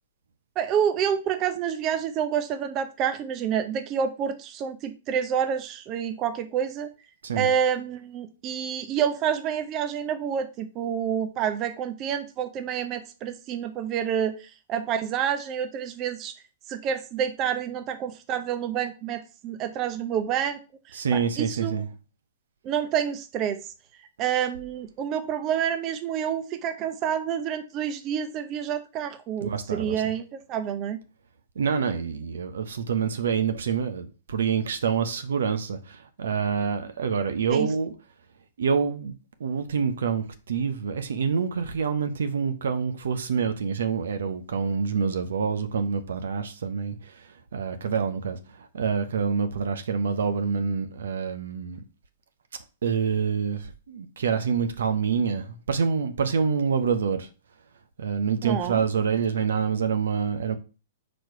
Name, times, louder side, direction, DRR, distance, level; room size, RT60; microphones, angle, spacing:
voice 1, 0.6-6.9 7.4-16.3 16.7-20.6 20.9-21.8 22.6-23.6 24.2-31.0 37.5-37.7 58.4-58.8, right 8 dB, 35° right, 0.7 m, -28 dB
voice 2, 20.9-21.9 29.4-30.0 31.6-37.9 38.6-47.1 47.5-51.8 52.8-57.3 58.0-60.6, right 6 dB, 70° right, 0.8 m, -27 dB
4.7 x 4.3 x 4.6 m
hypercardioid pair, 115°, 0 cm